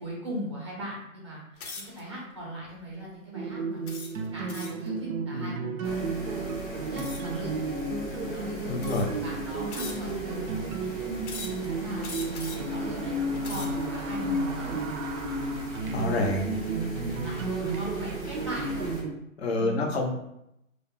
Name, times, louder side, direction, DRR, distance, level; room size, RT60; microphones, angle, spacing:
voice 1, 0.0-1.4 1.7-3.8 4.3-7.5 8.2-10.9 11.4-12.1 12.5-14.8 15.7-18.9 19.5-19.9, right 1 dB, 20° right, -5 dB, 0.4 m, -39 dB
sound 1, 1.6-2.0 2.7-2.9 3.9-4.9 7.0-7.4 8.2-8.3 8.8-9.2 9.7-10.3 11.2-11.7 12.0-12.7 13.2-13.9, left 4 dB, 80° left, 0.8 m, -41 dB
sound 2, 3.3-19.1, right 2 dB, 70° right, 0.5 m, -33 dB
sound 3, 5.8-19.0, right 1 dB, 10° left, 0.8 m, -40 dB
voice 2, 8.6-9.1 15.9-16.6 19.4-20.1, left 2 dB, 50° left, 2 dB, 0.5 m, -27 dB
2.3 x 2.0 x 3.3 m, 0.82 s
hypercardioid pair, 155°, 42 cm